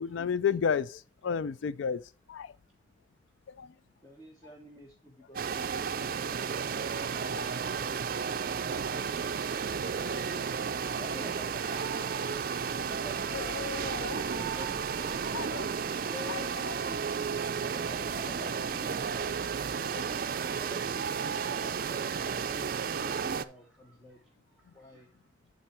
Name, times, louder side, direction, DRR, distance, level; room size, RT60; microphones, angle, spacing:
voice 1, 0.0-2.0 2.3-2.5 3.6-3.7 7.2-7.5 8.8-8.9 13.3-14.2 14.5-14.7 15.3-15.7 16.3-16.4 16.7-16.8 19.8-20.0, left 7 dB, 90° left, 0.4 m, -32 dB
voice 2, 4.0-7.7 8.9-9.4 10.9-11.7 12.8-13.7 14.1-15.3 16.0-20.1 20.6-24.2 24.7-25.1, equal, 20° left, 1.0 m, -48 dB
sound 1, 5.4-23.5, right 6 dB, 50° right, 0.4 m, -33 dB
voice 3, 9.6-10.5 11.5-12.5 13.5-14.0 23.1-24.2 24.5-25.2, right 1 dB, ahead, 3.0 m, -54 dB
sound 2, 10.6-21.3, right 2 dB, 30° right, 1.3 m, -54 dB
11.5 x 4.1 x 4.4 m
head